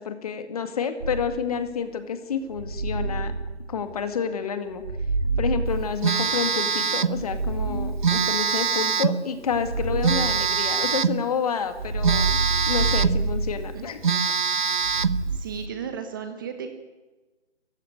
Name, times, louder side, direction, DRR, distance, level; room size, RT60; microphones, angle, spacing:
voice 1, 0.0-3.3 3.7-4.8 5.4-12.4 12.7-14.3, left 6 dB, 35° left, 9 dB, 2.2 m, -29 dB
sound 1, 1.0-1.7 2.5-4.1 4.7-6.5 7.0-8.6 9.4-11.1 11.7-14.2 14.8-15.4, right 3 dB, 60° right, 3.2 m, -28 dB
Telephone, 6.0-7.2 8.0-9.2 10.0-11.2 12.0-13.2 13.7-13.8 14.0-15.2, right 6 dB, 45° right, 0.8 m, -23 dB
voice 2, 15.3-16.7, right 7 dB, 20° right, 7 dB, 1.3 m, -35 dB
27.5 x 15.5 x 9.5 m, 1.2 s
figure-of-eight pair, 155°, 35 cm